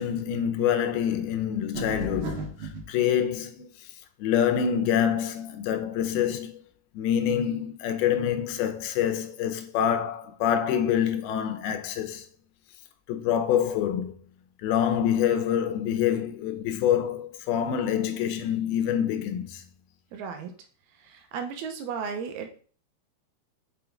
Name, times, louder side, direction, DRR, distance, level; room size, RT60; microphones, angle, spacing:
voice 1, 0.0-3.9 4.2-6.6 6.9-12.3 13.1-14.2 14.6-19.7, left 9 dB, 80° left, 2.6 m, -26 dB
sound 1, 1.7-2.9, right 2 dB, 50° right, 1.6 m, -34 dB
voice 2, 20.1-20.5 21.0-22.6, right 6 dB, 85° right, 2.8 m, -35 dB
6.0 x 5.7 x 3.6 m
omnidirectional pair, 4.5 m